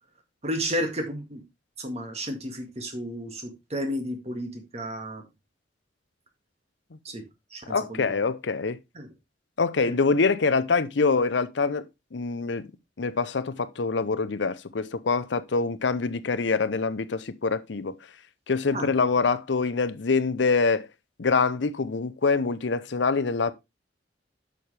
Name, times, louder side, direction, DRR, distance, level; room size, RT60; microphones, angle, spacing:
voice 1, 0.4-1.4 1.8-5.2 7.1-7.2 7.5-7.6 7.9-8.0 9.0-9.1 9.8-9.9 18.7-18.9, equal, 35° right, 1.9 m, -32 dB
voice 2, 7.7-8.8 9.6-11.8 12.1-12.7 13.0-18.0 18.5-20.9 21.2-23.5, left 4 dB, 75° left, 0.7 m, -25 dB
8.6 x 6.4 x 3.3 m
head